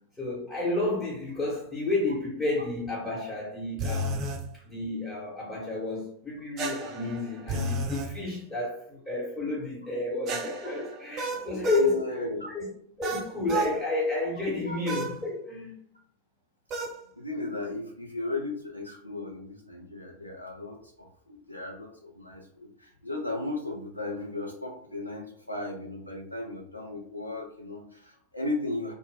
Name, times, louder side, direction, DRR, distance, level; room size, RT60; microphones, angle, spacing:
voice 1, 0.2-4.3 4.5-12.0 12.5-12.7 13.0-15.7, left 2 dB, 20° left, 0.9 m, -31 dB
sound 1, 3.8-4.4 6.6-8.1 10.3-11.9 13.0-13.8 14.9-15.2 16.7-17.0, right 1 dB, 35° right, 0.4 m, -32 dB
voice 2, 11.7-12.5 14.7-14.8 17.1-28.9, left 2 dB, 90° left, 0.5 m, -35 dB
2.1 x 2.0 x 3.4 m
figure-of-eight pair, 90°, 0 cm